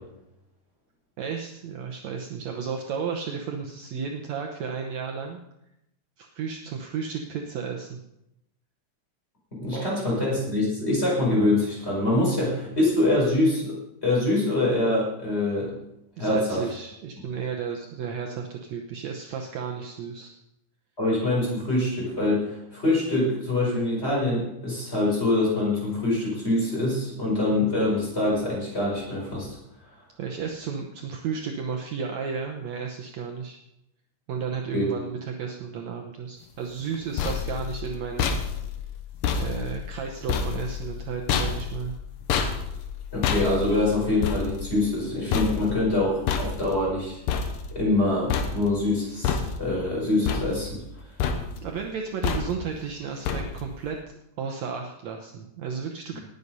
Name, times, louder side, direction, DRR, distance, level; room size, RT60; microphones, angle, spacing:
voice 1, 1.2-5.4 6.2-8.0 9.7-9.9 16.2-20.3 30.2-33.6 34.3-38.4 39.4-41.9 51.6-54.0 54.4-56.2, right 6 dB, 65° right, 2 dB, 2.0 m, -33 dB
voice 2, 9.5-13.8 14.0-15.8 16.2-16.6 21.0-29.6 34.7-34.9 43.1-47.2 47.7-50.8 56.1-56.2, left 2 dB, 20° left, -4 dB, 5.5 m, -24 dB
sound 1, 36.8-48.0 48.3-48.9 49.2-49.9 50.3-50.9 51.2-51.7 52.2-52.8 53.3-53.8, left 6 dB, 85° left, 2.7 m, -29 dB
18.5 x 8.1 x 5.4 m, 0.86 s
omnidirectional pair, 3.7 m